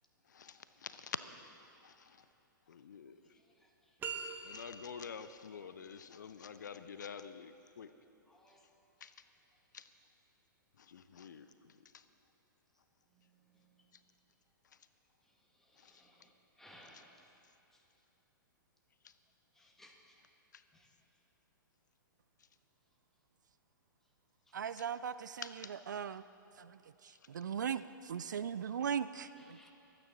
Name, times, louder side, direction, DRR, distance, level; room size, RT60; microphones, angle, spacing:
voice 1, 0.3-1.2 1.8-2.2 2.7-3.2 4.4-7.9 9.0-9.1 9.7-9.9 10.8-12.0 15.8-16.0 16.9-17.0 19.0-19.1 20.5-20.6 24.8-24.9 25.4-25.7, left 7 dB, 60° left, 11 dB, 0.6 m, -48 dB
sound 1, 4.0-5.1, right 5 dB, 15° right, 0.9 m, -42 dB
voice 2, 16.6-17.1 19.6-19.9 25.3-25.5 29.4-29.7, left 1 dB, 5° left, 0 dB, 1.4 m, -59 dB
voice 3, 24.5-25.4 25.9-26.2 26.6-29.6, right 7 dB, 60° right, 14 dB, 0.4 m, -39 dB
24.0 x 9.1 x 3.9 m, 2.8 s
figure-of-eight pair, 110°, 11 cm